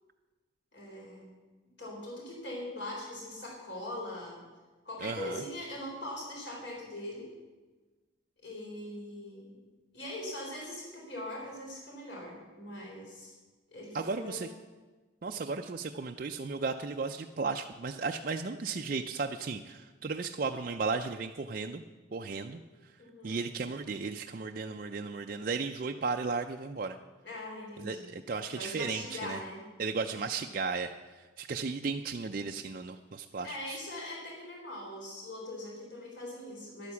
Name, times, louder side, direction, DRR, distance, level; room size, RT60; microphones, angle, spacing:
voice 1, 0.7-1.3 1.8-4.4 4.8-7.3 8.4-9.6 9.9-13.4 13.7-14.5 23.0-23.4 27.2-28.1 28.5-29.6 33.4-36.9, left 1 dB, 60° left, -2 dB, 4.1 m, -41 dB
voice 2, 5.0-5.4 13.9-14.5 15.2-21.8 22.1-22.6 23.2-27.0 27.8-29.4 29.8-33.8, right 4 dB, 45° right, 4 dB, 0.4 m, -35 dB
10.5 x 9.4 x 7.0 m, 1.3 s
head